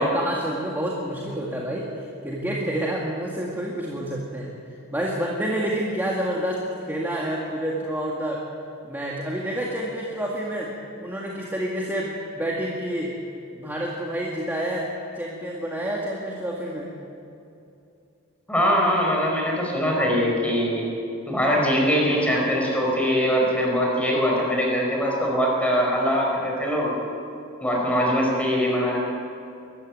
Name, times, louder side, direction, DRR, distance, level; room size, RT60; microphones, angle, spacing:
voice 1, 0.0-1.9 2.2-4.5 4.9-8.4 8.8-10.7 11.0-13.1 13.6-14.9 15.2-16.9, right 1 dB, 10° right, -4 dB, 2.0 m, -28 dB
voice 2, 18.5-20.8 21.3-26.9 27.6-29.0, equal, 5° left, -2 dB, 5.0 m, -22 dB
23.0 x 14.0 x 9.3 m, 2.6 s
head